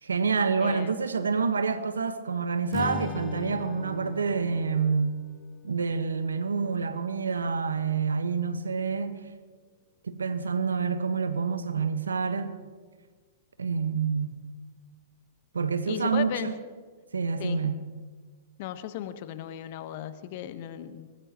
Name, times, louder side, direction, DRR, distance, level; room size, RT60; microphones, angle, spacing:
voice 1, 0.0-5.2 5.6-9.2 10.0-12.5 13.6-14.4 15.5-16.5 17.1-17.8, right 5 dB, 85° right, 1.4 m, -27 dB
voice 2, 0.6-1.0 15.9-16.5 17.4-17.7 18.6-21.1, left 11 dB, 50° left, 1.2 m, -36 dB
Strum, 2.7-7.1, left 5 dB, 20° left, 1.2 m, -41 dB
23.0 x 20.0 x 3.1 m
hypercardioid pair, 115°, 0 cm